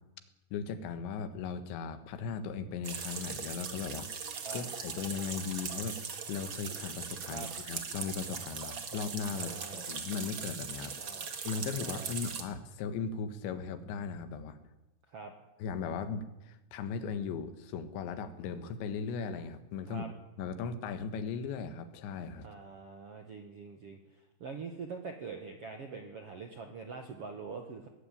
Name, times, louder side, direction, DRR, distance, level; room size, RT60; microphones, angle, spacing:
voice 1, 0.5-4.1 4.5-11.0 11.4-14.6 15.6-20.1 20.4-22.5, left 6 dB, 80° left, 11 dB, 3.8 m, -38 dB
sound 1, 2.8-12.4, right 5 dB, 45° right, 1.6 m, -40 dB
voice 2, 9.3-9.9 11.0-11.3 11.8-12.1 15.1-15.3 19.9-20.1 22.4-27.9, right 4 dB, 60° right, 5 dB, 1.5 m, -44 dB
19.0 x 14.5 x 10.0 m, 0.95 s
omnidirectional pair, 5.1 m